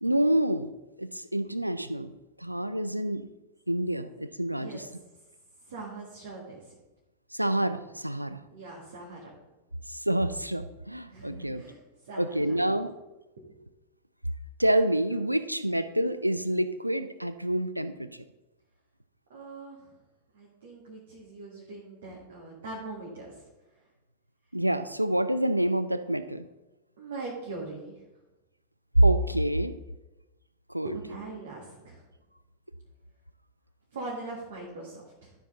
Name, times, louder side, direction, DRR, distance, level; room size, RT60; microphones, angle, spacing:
voice 1, 0.0-0.7 1.0-2.1 2.4-3.3 3.7-4.9 7.3-8.4 9.9-11.6 12.2-12.9 14.6-18.2 24.5-26.5 29.0-29.7 30.7-31.0, right 1 dB, 90° right, 12 dB, 0.4 m, -27 dB
voice 2, 5.6-6.8 8.5-9.3 11.1-12.6 13.4-13.5 15.1-15.2 19.3-19.9 20.3-23.8 27.0-28.0 30.8-32.0 33.9-35.3, right 2 dB, 60° right, -4 dB, 1.8 m, -41 dB
12.5 x 4.6 x 3.8 m, 1.0 s
figure-of-eight pair, 90°, 0 cm